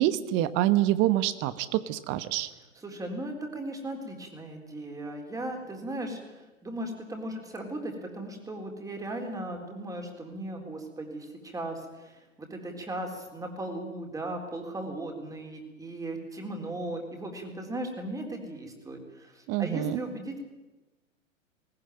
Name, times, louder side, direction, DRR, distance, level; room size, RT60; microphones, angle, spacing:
voice 1, 0.0-2.5 19.5-20.0, right 14 dB, 30° right, 14 dB, 1.2 m, -26 dB
voice 2, 2.8-20.4, right 1 dB, 10° right, 3 dB, 3.8 m, -37 dB
19.5 x 19.0 x 9.2 m, 1.1 s
figure-of-eight pair, 105°, 40 cm